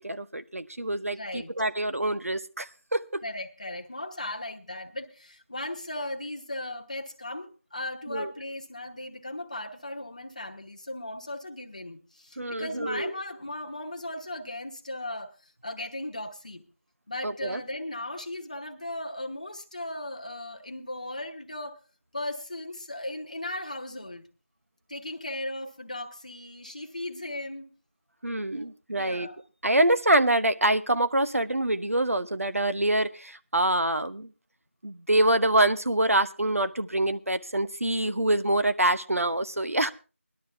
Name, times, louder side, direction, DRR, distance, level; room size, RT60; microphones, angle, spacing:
voice 1, 0.0-3.2 8.1-8.3 12.4-13.1 17.2-17.6 28.2-29.3 29.6-34.3 34.8-39.9, right 1 dB, 80° right, 11 dB, 1.0 m, -25 dB
voice 2, 1.1-1.5 3.2-16.6 17.1-21.8 22.1-24.2 24.9-27.7 28.5-29.4, left 1 dB, 30° left, 5 dB, 1.1 m, -37 dB
19.0 x 12.0 x 3.4 m, 0.33 s
figure-of-eight pair, 175°, 8 cm